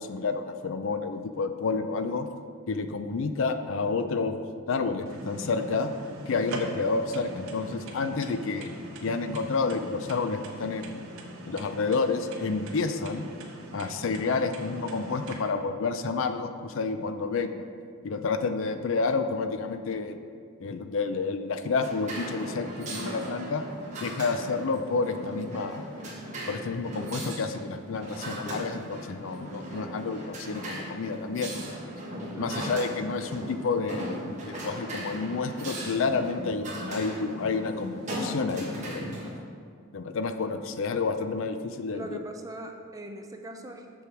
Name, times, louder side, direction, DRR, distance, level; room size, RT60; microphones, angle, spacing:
voice 1, 0.0-2.3 2.7-4.4 4.7-5.9 6.3-8.7 9.0-11.0 11.5-13.3 13.7-17.7 18.0-20.2 20.6-23.6 24.0-25.9 26.5-31.5 32.4-39.1 39.9-42.2, left 4 dB, 60° left, 8 dB, 0.4 m, -30 dB
sound 1, 5.1-15.3, right 1 dB, 70° right, 0.9 m, -42 dB
sound 2, 21.8-39.3, right 1 dB, 35° right, 1.4 m, -38 dB
voice 2, 32.3-32.8 41.9-44.0, right 1 dB, 15° right, 4 dB, 0.4 m, -41 dB
6.8 x 6.4 x 4.5 m, 2.3 s
head